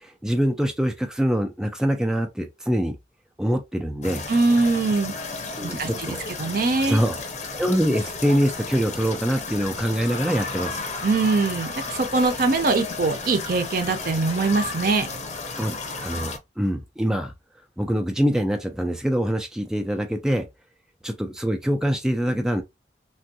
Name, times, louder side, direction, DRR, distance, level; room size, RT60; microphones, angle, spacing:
voice 1, 0.0-3.0 3.4-4.2 5.6-6.2 6.8-7.2 7.5-10.8 15.6-17.3 17.8-20.5 21.0-22.6, equal, 5° right, 0.3 m, -24 dB
sound 1, 4.0-16.4, left 3 dB, 40° left, 0.6 m, -33 dB
voice 2, 4.3-5.1 5.6-7.0 11.0-15.1, right 3 dB, 50° right, 0.5 m, -22 dB
3.4 x 2.3 x 2.6 m
head